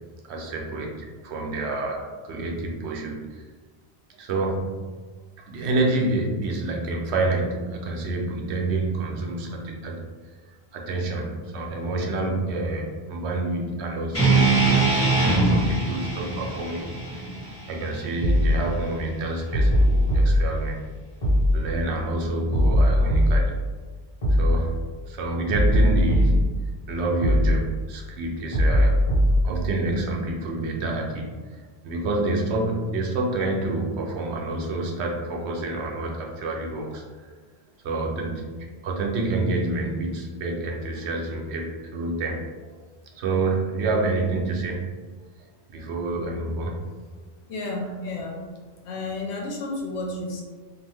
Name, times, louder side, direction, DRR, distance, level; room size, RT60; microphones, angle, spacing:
voice 1, 0.3-3.4 4.2-4.8 5.5-10.1 10.7-17.3 17.7-20.8 21.5-23.6 24.3-24.8 25.1-29.0 29.4-31.6 31.8-37.3 37.8-42.4 43.1-44.9 45.7-46.8 47.7-47.8, right 2 dB, 85° right, 0 dB, 0.9 m, -28 dB
sound 1, 14.1-18.3, right 3 dB, 15° left, 0.9 m, -22 dB
sound 2, 18.2-18.6 19.5-20.4 21.2-21.6 22.5-23.4 24.2-24.6 25.5-26.4 27.2-27.6 28.5-29.4, equal, 40° left, 1.4 m, -19 dB
voice 2, 47.5-48.3 48.8-50.4, left 2 dB, 85° left, 0 dB, 0.9 m, -31 dB
2.6 x 2.4 x 3.3 m, 1.4 s
omnidirectional pair, 1.1 m